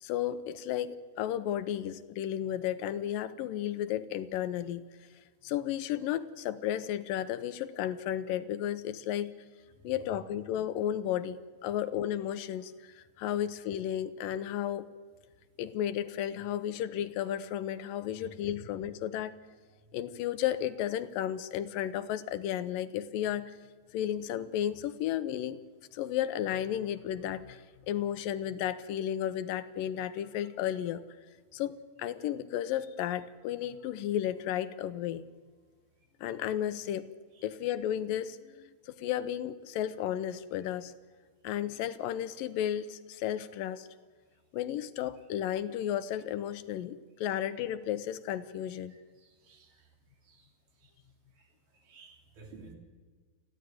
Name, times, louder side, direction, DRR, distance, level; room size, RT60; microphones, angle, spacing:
voice 1, 0.0-4.8 5.4-9.3 9.8-14.9 15.6-19.3 19.9-23.5 23.9-25.6 25.9-31.0 31.5-35.2 36.2-37.1 37.4-40.9 41.4-43.9 44.5-48.9, left 11 dB, 85° left, 13 dB, 2.5 m, -33 dB
voice 2, 48.9-49.9 50.2-50.5 50.8-50.9 51.4-51.5 51.7-52.7, right 4 dB, 90° right, 2 dB, 5.1 m, -54 dB
29.0 x 11.5 x 9.3 m, 1.5 s
omnidirectional pair, 4.0 m